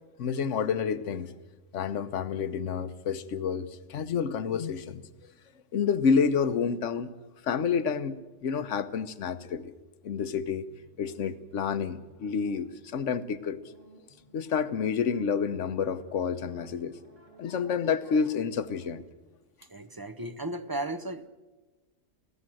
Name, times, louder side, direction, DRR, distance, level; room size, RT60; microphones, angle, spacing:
voice 1, 0.2-1.3 1.7-5.1 5.7-7.1 7.4-9.7 10.0-10.7 11.0-13.6 14.3-17.0 17.4-19.0, left 6 dB, 75° left, 12 dB, 1.3 m, -29 dB
sound 1, 10.9-18.8, right 1 dB, 75° right, 6.7 m, -57 dB
voice 2, 19.7-21.3, right 1 dB, 20° right, 12 dB, 0.7 m, -35 dB
23.5 x 16.0 x 7.7 m, 1.2 s
omnidirectional pair, 1.3 m